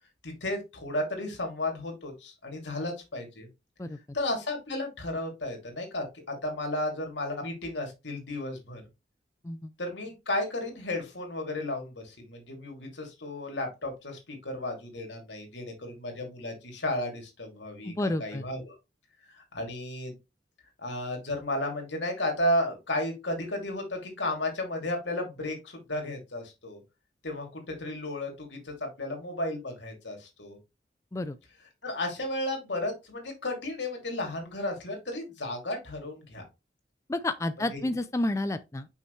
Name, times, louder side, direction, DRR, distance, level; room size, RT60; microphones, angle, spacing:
voice 1, 0.2-3.5 4.1-8.8 9.8-18.7 19.3-20.2 20.8-26.8 27.2-30.6 31.8-36.4 37.7-37.8, left 1 dB, 85° left, 2.6 m, -33 dB
voice 2, 17.8-18.4 31.1-31.4 37.1-38.9, left 2 dB, 15° left, 0.3 m, -30 dB
6.2 x 5.6 x 3.1 m
head